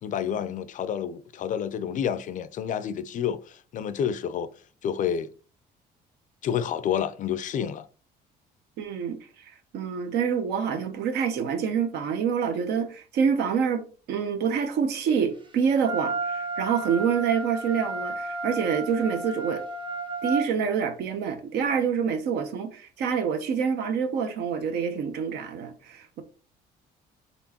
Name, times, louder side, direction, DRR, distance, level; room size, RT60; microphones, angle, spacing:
voice 1, 0.0-4.5 4.8-5.3 6.4-7.9, left 8 dB, 50° left, 0.4 m, -29 dB
voice 2, 8.8-9.2 9.5-19.6 20.2-26.2, right 7 dB, 75° right, 0.8 m, -27 dB
Wind instrument woodwind instrument, 15.8-20.5, right 2 dB, 30° right, 0.8 m, -32 dB
4.3 x 3.4 x 2.9 m
cardioid pair, 110°, 17 cm